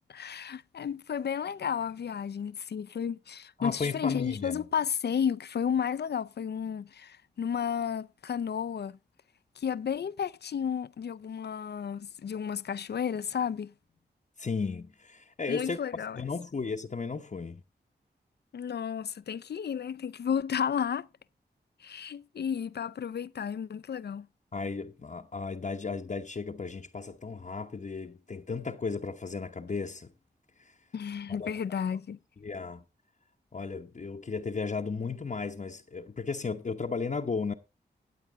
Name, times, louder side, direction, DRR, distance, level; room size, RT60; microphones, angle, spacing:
voice 1, 0.1-9.0 9.6-13.7 15.5-16.2 18.5-21.1 21.8-24.3 30.9-32.2, left 7 dB, 65° left, 0.5 m, -32 dB
voice 2, 3.6-4.6 14.4-15.8 16.2-17.6 24.5-30.1 30.6-30.8 31.3-31.5 32.4-32.8 33.5-37.5, left 4 dB, 40° left, 0.9 m, -35 dB
17.0 x 7.9 x 3.5 m
cardioid pair, 40°, 19 cm